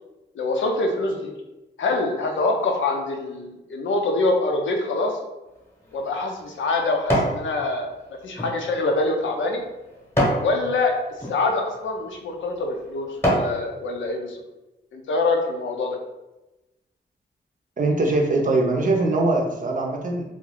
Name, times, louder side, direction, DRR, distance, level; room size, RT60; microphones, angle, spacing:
voice 1, 0.3-1.3 1.8-5.2 5.9-7.9 8.2-9.6 10.4-10.9 11.3-14.4 14.9-16.0, left 2 dB, 90° left, 2 dB, 0.5 m, -25 dB
sound 1, 5.6-7.4 7.9-10.5 11.1-11.4 12.0-12.2 12.7-13.6 14.1-14.2, equal, 15° left, 0.9 m, -26 dB
voice 2, 17.8-20.2, right 2 dB, 45° right, 1 dB, 0.6 m, -22 dB
2.4 x 2.2 x 3.5 m, 1.0 s
wide cardioid pair, 90°, 19 cm